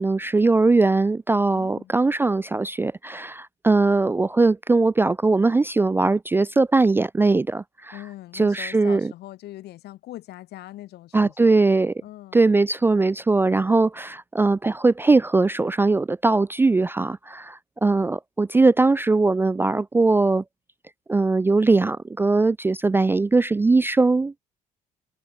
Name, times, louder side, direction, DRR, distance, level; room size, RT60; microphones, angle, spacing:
voice 1, 0.0-7.9 8.4-9.1 11.1-11.9 12.3-20.4 21.1-24.3, right 3 dB, 15° right, 0.3 m, -20 dB
voice 2, 1.5-1.9 7.9-11.6 12.0-12.4, left 15 dB, 75° left, 5.8 m, -41 dB
cardioid pair, 110°, 17 cm